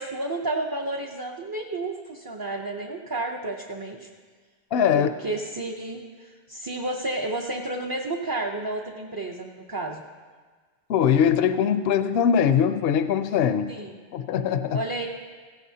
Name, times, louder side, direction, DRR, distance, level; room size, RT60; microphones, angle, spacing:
voice 1, 0.0-4.1 5.0-10.0 13.7-13.9 14.7-15.1, right 2 dB, 25° right, -1 dB, 0.6 m, -31 dB
voice 2, 4.7-5.1 10.9-13.7 14.1-14.8, left 8 dB, 70° left, 10 dB, 0.8 m, -21 dB
16.0 x 15.0 x 2.8 m, 1.5 s
omnidirectional pair, 1.1 m